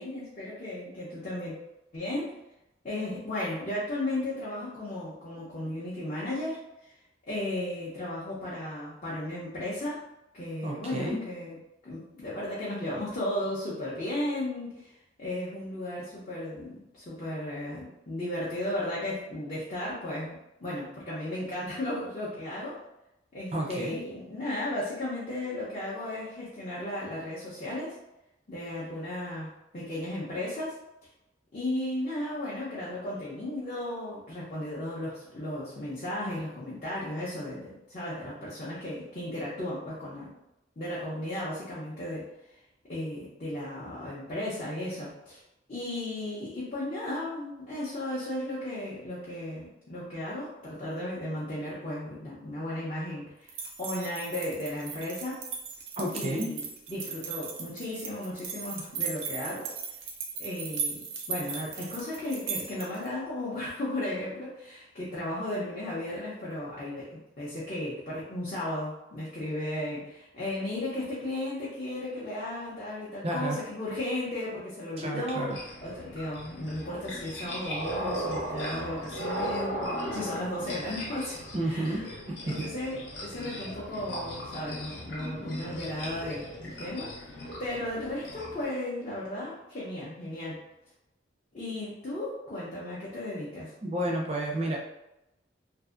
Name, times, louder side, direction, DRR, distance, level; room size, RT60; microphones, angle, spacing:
voice 1, 0.0-1.5 1.9-2.3 2.8-6.9 7.3-10.0 10.3-11.6 11.8-20.3 20.6-22.8 23.3-28.0 28.5-30.8 31.5-40.3 40.8-42.6 42.9-45.4 45.7-55.4 56.1-59.7 60.4-81.4 81.6-82.1 82.5-87.1 87.4-90.6 91.5-93.7, left 1 dB, 35° left, -8 dB, 0.6 m, -35 dB
voice 2, 10.6-11.2 23.5-24.0 56.0-56.5 73.2-73.6 75.0-75.6 81.5-82.7 93.8-94.8, right 1 dB, 30° right, -1 dB, 0.5 m, -31 dB
sound 1, 53.5-63.1, right 6 dB, 80° right, 0.5 m, -37 dB
sound 2, 75.5-88.7, equal, 70° left, 0.8 m, -37 dB
2.6 x 2.5 x 2.4 m, 0.89 s
head